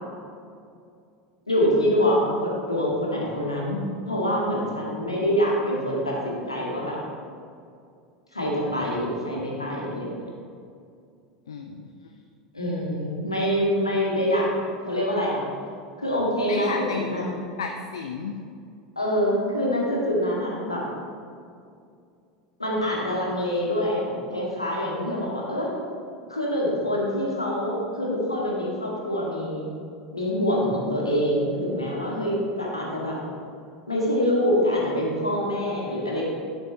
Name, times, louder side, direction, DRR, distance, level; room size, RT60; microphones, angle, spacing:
voice 1, 1.5-7.0 8.3-10.2 12.5-14.5 14.9-15.4 16.0-17.3 19.0-20.8 22.6-25.8 26.3-29.7 30.1-33.2 33.9-36.2, equal, 85° left, -4 dB, 1.9 m, -25 dB
voice 2, 11.5-11.9 16.5-18.4, left 5 dB, 70° left, 4 dB, 0.5 m, -33 dB
10.5 x 7.4 x 3.2 m, 2.3 s
figure-of-eight pair, 80°, 3 cm